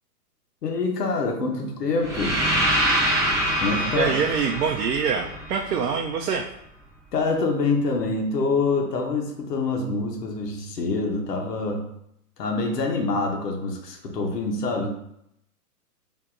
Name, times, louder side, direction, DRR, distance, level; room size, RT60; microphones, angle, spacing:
voice 1, 0.6-2.4 3.6-4.1 7.1-11.8 12.4-15.0, left 3 dB, 80° left, 2 dB, 1.0 m, -26 dB
sound 1, 2.0-6.0, equal, ahead, 1.1 m, -25 dB
voice 2, 3.9-6.4, right 6 dB, 70° right, 2 dB, 0.6 m, -25 dB
4.7 x 2.8 x 2.5 m, 0.77 s
hypercardioid pair, 140°, 48 cm